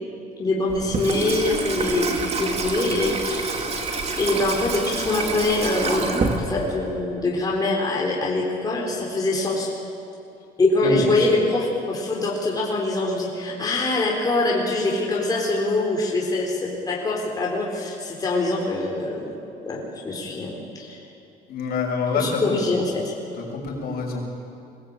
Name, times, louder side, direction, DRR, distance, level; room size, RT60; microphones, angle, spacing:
voice 1, 0.4-3.7 4.2-9.7 10.6-19.4 19.6-21.0 22.1-23.1, left 2 dB, 20° left, -3 dB, 4.2 m, -24 dB
Water tap faucet / Sink (filling or washing), 0.7-7.0, right 3 dB, 40° right, 2.7 m, -27 dB
voice 2, 21.5-22.4 23.4-24.2, left 4 dB, 65° left, -1 dB, 6.6 m, -26 dB
24.0 x 19.5 x 9.0 m, 2.7 s
cardioid pair, 125°, 17 cm